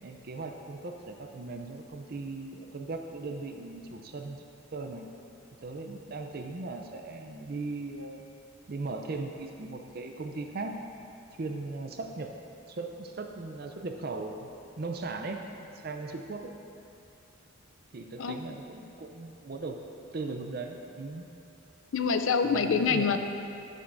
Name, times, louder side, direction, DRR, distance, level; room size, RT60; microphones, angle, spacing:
voice 1, 0.0-4.4 4.7-5.1 5.6-8.2 8.7-10.8 11.4-12.3 12.7-14.5 14.8-16.5 17.9-19.8 20.1-21.3 22.4-23.2, right 3 dB, 45° right, 4 dB, 0.5 m, -38 dB
voice 2, 21.9-23.2, left 5 dB, 65° left, 8 dB, 0.4 m, -25 dB
11.5 x 8.6 x 2.6 m, 2.6 s
head